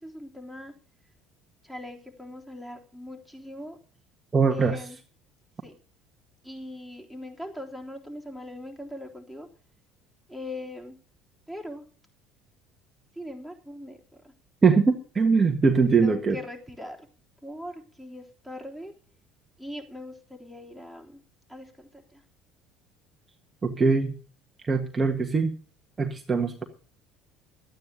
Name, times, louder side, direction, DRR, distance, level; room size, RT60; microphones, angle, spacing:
voice 1, 0.0-0.7 1.6-3.8 4.5-5.0 5.6-5.7 6.4-9.5 10.3-11.0 11.5-11.8 13.1-14.3 16.0-17.1 17.4-18.9 19.6-21.2 21.5-22.2, left 1 dB, 5° left, 1 dB, 3.7 m, -40 dB
voice 2, 4.3-4.8 14.6-16.3 23.6-24.1 24.6-25.5 26.0-26.6, right 4 dB, 25° right, 3 dB, 1.6 m, -22 dB
12.0 x 9.2 x 6.7 m, 0.40 s
supercardioid pair, 80°, 0 cm